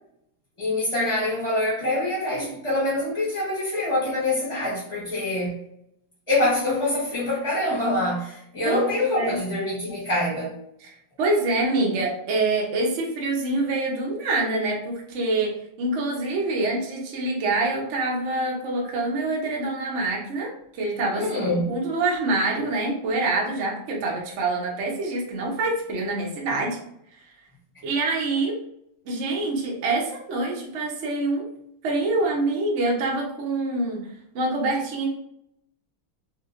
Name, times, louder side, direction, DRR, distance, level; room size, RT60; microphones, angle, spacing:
voice 1, 0.6-5.6 6.3-10.5 21.1-21.8, left 1 dB, 20° left, -9 dB, 0.8 m, -25 dB
voice 2, 8.6-9.4 10.8-26.8 27.8-28.5 29.1-31.4 31.8-34.1 34.3-35.1, right 2 dB, 80° right, -2 dB, 0.6 m, -26 dB
3.2 x 2.8 x 2.4 m, 0.75 s
omnidirectional pair, 2.2 m